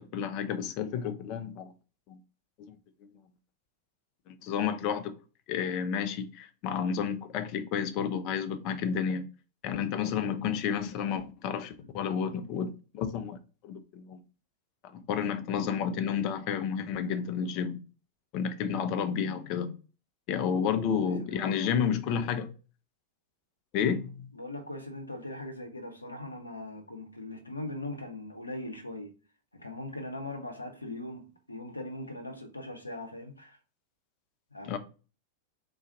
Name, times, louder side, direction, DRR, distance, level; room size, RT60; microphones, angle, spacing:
voice 1, 0.0-1.7 2.1-2.2 2.6-2.8 4.3-5.1 5.5-9.3 9.6-13.4 13.6-14.2 14.8-17.8 18.3-19.7 20.3-22.5 23.7-24.3 34.6-34.8, left 7 dB, 40° left, 0.5 m, -31 dB
voice 2, 20.4-20.8 21.2-22.2 24.3-29.1 29.5-33.6 34.5-34.8, left 1 dB, 85° left, 0.7 m, -40 dB
3.9 x 2.4 x 3.8 m
figure-of-eight pair, 90°, 0 cm